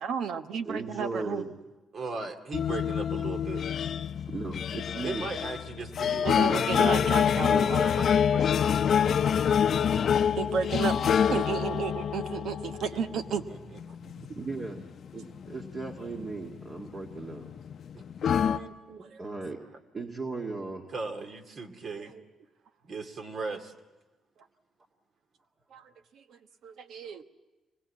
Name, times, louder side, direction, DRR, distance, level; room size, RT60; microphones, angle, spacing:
voice 1, 0.0-1.4 6.2-7.8 10.4-13.4 19.0-19.2 22.1-22.2 25.7-25.8 26.3-27.2, right 6 dB, 75° right, 9 dB, 1.1 m, -33 dB
voice 2, 0.7-1.6 4.2-5.3 6.7-7.7 12.6-12.8 14.0-14.8 15.1-17.5 19.2-19.6 19.9-20.9, right 4 dB, 40° right, 1 dB, 2.0 m, -37 dB
voice 3, 1.9-3.6 5.0-8.8 12.9-13.2 13.5-13.6 17.9-19.0 20.9-22.1 22.8-23.7, right 3 dB, 55° right, 5 dB, 2.3 m, -38 dB
sound 1, 2.5-18.6, left 8 dB, 60° left, 0.7 m, -27 dB
25.0 x 21.0 x 8.4 m, 1.2 s
cardioid pair, 90°, 0 cm